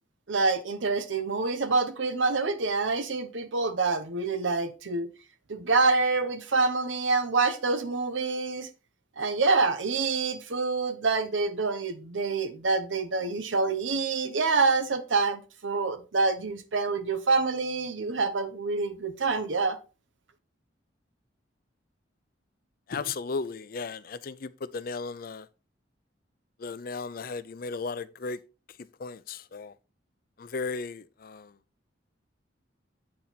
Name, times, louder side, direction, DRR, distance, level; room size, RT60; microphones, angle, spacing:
voice 1, 0.3-5.1 5.5-8.7 9.2-19.8, right 3 dB, 80° right, 0.8 m, -26 dB
voice 2, 22.9-25.5 26.6-28.4 29.0-29.7 30.4-31.5, left 4 dB, 50° left, 0.5 m, -35 dB
8.6 x 4.4 x 4.0 m
head